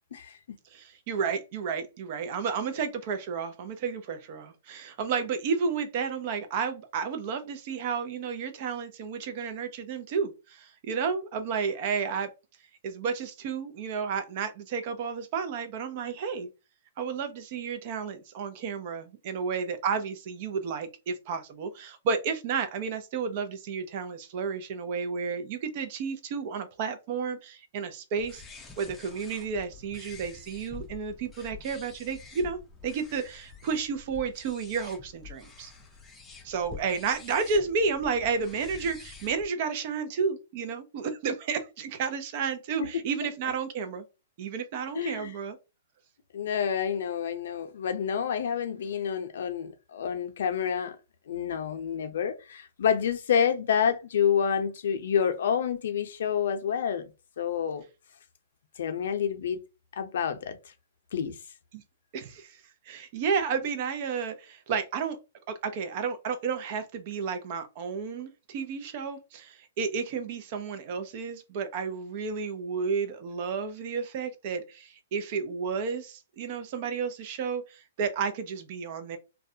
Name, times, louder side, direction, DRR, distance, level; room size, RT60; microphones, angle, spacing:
voice 1, 0.7-12.3 12.8-16.5 17.0-28.4 28.8-35.7 36.4-44.0 44.4-45.6 61.7-61.8 62.1-62.6 62.9-65.2 65.6-79.2, right 5 dB, 45° right, 0.5 m, -32 dB
sound 1, 28.2-39.5, left 5 dB, 10° left, 0.5 m, -48 dB
voice 2, 44.9-45.3 46.3-51.0 51.3-57.1 57.4-57.8 58.8-59.6 60.0-60.6 61.1-61.4, left 7 dB, 70° left, 0.5 m, -28 dB
2.3 x 2.1 x 2.7 m
hypercardioid pair, 140°, 0 cm